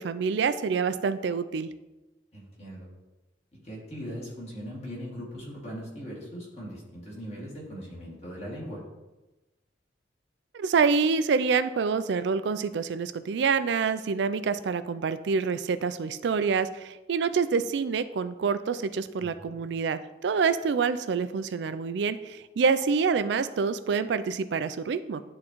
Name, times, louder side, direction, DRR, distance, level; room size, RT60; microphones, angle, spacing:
voice 1, 0.0-1.7 10.5-25.2, right 5 dB, 65° right, 13 dB, 0.4 m, -27 dB
voice 2, 2.3-2.9 3.6-8.8 19.2-19.6, equal, 35° left, -5 dB, 2.1 m, -40 dB
10.5 x 3.7 x 3.0 m, 1.1 s
head